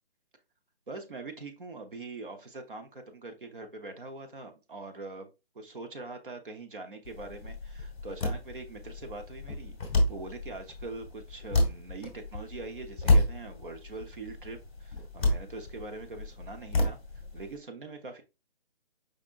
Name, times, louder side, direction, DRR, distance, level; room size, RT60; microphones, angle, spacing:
voice 1, 0.9-5.3 5.5-9.8 10.1-17.0 17.3-18.2, right 3 dB, 50° right, 6 dB, 0.9 m, -43 dB
sound 1, 7.0-17.6, left 2 dB, 10° left, 1.0 m, -30 dB
5.1 x 3.6 x 2.5 m, 0.28 s
hypercardioid pair, 180°, 32 cm